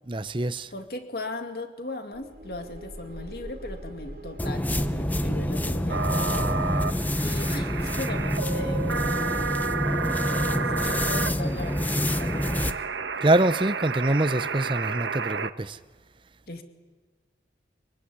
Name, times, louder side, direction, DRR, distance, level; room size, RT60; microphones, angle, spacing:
voice 1, 0.1-0.7 13.2-15.8, right 2 dB, 25° right, 0.7 m, -24 dB
voice 2, 0.7-6.8 7.2-9.6 10.2-12.8 16.5-16.6, left 2 dB, 55° left, 2.4 m, -38 dB
sound 1, 2.1-9.9, right 1 dB, 50° right, 2.4 m, -43 dB
sound 2, 4.4-12.8, left 1 dB, 10° left, 0.7 m, -27 dB
sound 3, 5.9-15.5, right 5 dB, 85° right, 1.3 m, -31 dB
24.5 x 23.0 x 9.9 m
head